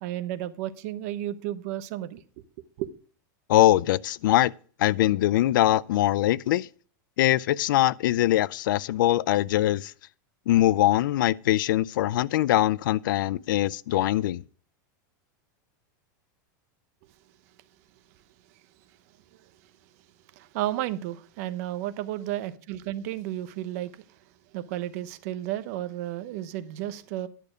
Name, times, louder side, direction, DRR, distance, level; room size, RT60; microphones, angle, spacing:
voice 1, 0.0-2.2 2.8-2.9 20.4-24.0 24.5-27.3, right 13 dB, 50° right, 0.9 m, -32 dB
voice 2, 3.5-4.5 4.8-6.7 7.2-9.9 10.5-14.4, left 14 dB, 85° left, 0.4 m, -22 dB
11.0 x 6.8 x 5.0 m
supercardioid pair, 170°, 10 cm